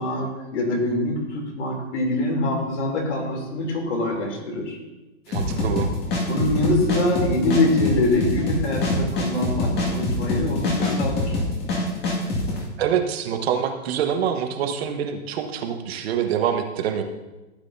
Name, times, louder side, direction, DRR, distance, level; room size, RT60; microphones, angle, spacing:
voice 1, 0.0-4.8 6.2-11.4, left 2 dB, 75° left, 1 dB, 3.2 m, -24 dB
sound 1, 5.3-12.6, left 2 dB, 30° left, 2.1 m, -25 dB
voice 2, 5.3-5.9 12.8-17.0, right 8 dB, 60° right, 5 dB, 1.4 m, -25 dB
15.0 x 8.1 x 2.7 m, 1.1 s
hypercardioid pair, 145°, 35 cm